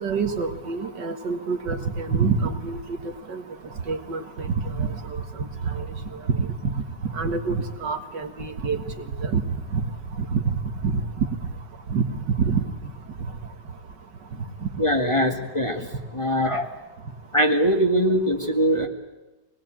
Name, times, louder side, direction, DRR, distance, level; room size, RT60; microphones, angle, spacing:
voice 1, 0.0-2.8 3.3-3.4 3.9-4.5 4.7-5.0 5.6-5.8 6.3-6.5 7.2-8.8 9.2-9.4 9.7-9.8 10.3-10.6 10.8-11.0 11.9-12.0 12.4-12.6, right 5 dB, 80° right, 6 dB, 2.4 m, -26 dB
voice 2, 14.8-15.9 16.1-16.7 17.3-18.9, equal, 20° left, 2 dB, 1.7 m, -22 dB
24.5 x 20.0 x 9.0 m, 1.1 s
omnidirectional pair, 1.9 m